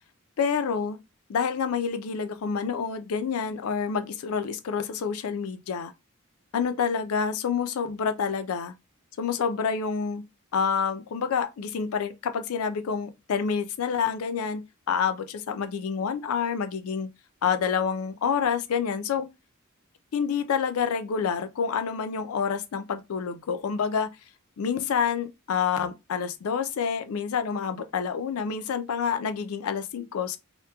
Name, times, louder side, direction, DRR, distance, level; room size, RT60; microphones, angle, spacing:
voice 1, 0.4-1.0 1.3-5.9 6.5-8.7 9.2-10.2 10.5-17.1 17.4-19.3 20.1-24.1 24.6-30.4, left 6 dB, 75° left, 0.4 m, -28 dB
2.9 x 2.1 x 2.2 m
head